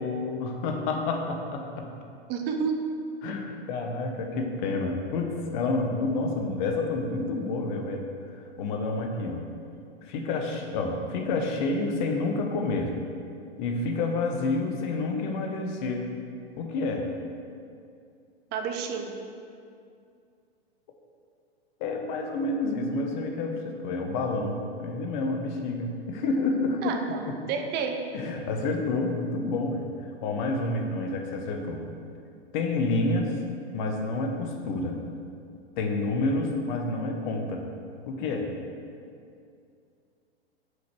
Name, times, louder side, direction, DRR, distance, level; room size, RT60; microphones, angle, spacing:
voice 1, 0.0-1.9 3.2-8.1 8.6-9.5 10.0-12.9 13.6-16.1 16.6-17.1 21.8-27.0 28.1-29.8 30.2-31.8 32.5-33.3 33.7-35.0 35.8-37.6 38.0-38.5, left 3 dB, 50° left, 3 dB, 1.1 m, -29 dB
voice 2, 2.3-2.8 18.5-19.2 26.8-28.0, right 6 dB, 35° right, 4 dB, 0.9 m, -30 dB
6.3 x 5.1 x 6.2 m, 2.4 s
hypercardioid pair, 105°, 31 cm